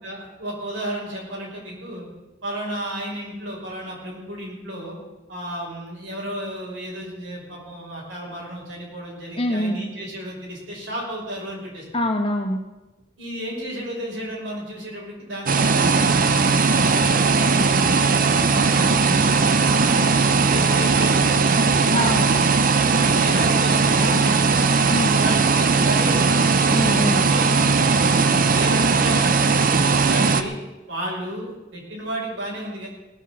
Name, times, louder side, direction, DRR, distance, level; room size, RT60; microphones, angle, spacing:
voice 1, 0.0-2.0 2.4-5.0 5.3-11.8 13.2-20.1 20.5-21.9 23.0-26.8 27.1-30.5 30.9-32.9, right 1 dB, 85° right, -4 dB, 6.0 m, -33 dB
voice 2, 9.4-9.8 11.9-12.6 21.9-22.4 24.0-24.3 24.9-25.2 26.7-27.2, left 1 dB, 30° left, 3 dB, 1.6 m, -24 dB
sound 1, 15.5-30.4, right 4 dB, 45° right, 0.7 m, -18 dB
18.5 x 7.1 x 7.3 m, 1.1 s
head